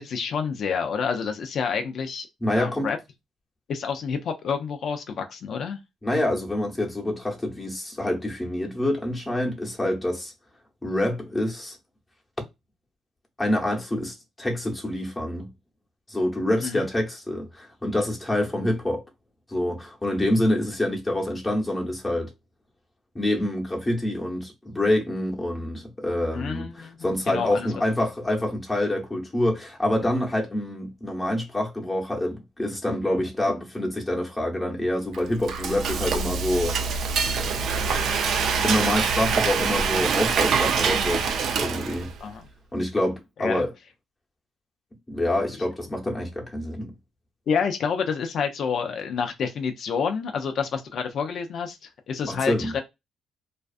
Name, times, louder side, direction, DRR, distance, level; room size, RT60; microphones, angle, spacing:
voice 1, 0.0-2.3 2.5-3.0 3.7-5.8 16.6-16.9 26.3-27.7 42.2-42.5 43.4-43.7 47.5-52.8, left 6 dB, 65° left, 0.4 m, -28 dB
voice 2, 2.4-2.9 6.0-10.3 10.8-11.8 13.4-15.5 16.1-19.0 19.5-22.3 23.1-36.8 38.6-41.3 41.6-42.1 42.7-43.7 45.1-46.9 52.2-52.7, left 1 dB, 15° left, 0.9 m, -26 dB
Frying (food), 35.1-42.2, right 5 dB, 70° right, 0.4 m, -25 dB
2.5 x 2.3 x 2.4 m
cardioid pair, 90°, 0 cm